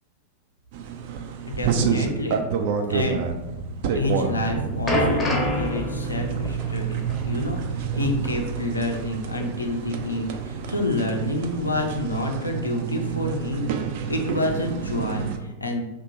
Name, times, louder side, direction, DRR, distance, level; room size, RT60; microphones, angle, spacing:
sound 1, 0.7-15.4, right 7 dB, 50° right, 0.3 m, -29 dB
voice 1, 1.4-2.4 2.9-3.2 3.9-7.6 7.9-13.8 14.1-15.9, left 1 dB, 80° left, 2 dB, 0.5 m, -28 dB
sound 2, 4.3-9.2 9.4-9.6 10.3-10.4, equal, 15° left, 0.6 m, -28 dB
2.9 x 2.2 x 3.9 m, 1.0 s
figure-of-eight pair, 90°, 0 cm